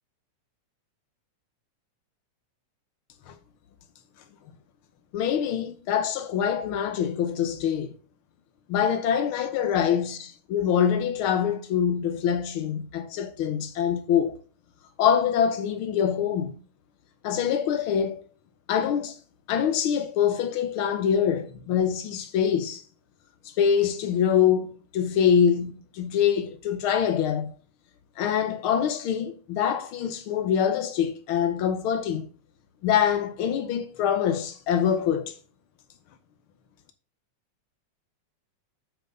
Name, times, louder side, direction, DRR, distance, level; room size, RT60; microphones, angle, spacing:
voice 1, 5.1-7.9 8.7-14.4 15.0-16.6 17.2-18.2 18.7-19.2 19.5-22.8 23.4-27.5 28.2-32.3 32.8-35.3, left 8 dB, 85° left, 1.1 m, -24 dB
7.7 x 7.6 x 3.8 m
omnidirectional pair, 3.5 m